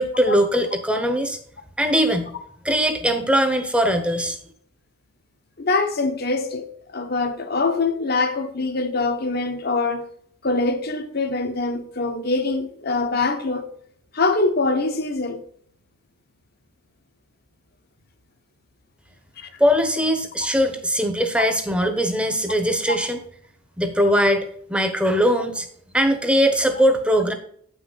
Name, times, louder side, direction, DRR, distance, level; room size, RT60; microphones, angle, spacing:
voice 1, 0.0-1.4 1.8-2.3 2.6-4.4 19.6-23.2 23.8-24.4 24.7-25.7 25.9-27.3, equal, 5° right, 1.0 m, -20 dB
voice 2, 5.6-10.1 10.4-13.7 14.1-15.4 19.4-19.5 21.4-21.5 22.9-23.0, left 3 dB, 50° left, 1.1 m, -24 dB
8.6 x 6.1 x 4.1 m
head